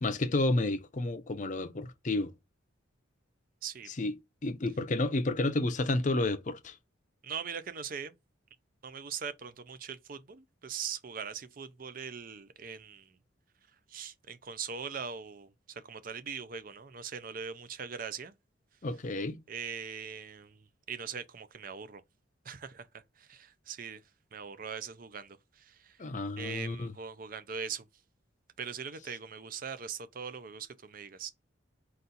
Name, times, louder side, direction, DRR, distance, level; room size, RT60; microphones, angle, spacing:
voice 1, 0.0-2.3 4.0-4.1 4.4-6.7 18.8-19.4 26.0-26.9, left 2 dB, 40° left, 0.5 m, -30 dB
voice 2, 7.2-8.2 8.8-13.1 13.9-18.3 19.5-22.0 22.4-24.0 24.3-26.0 26.4-27.9 28.6-31.3, right 6 dB, 45° right, 0.5 m, -41 dB
4.1 x 2.5 x 3.9 m
head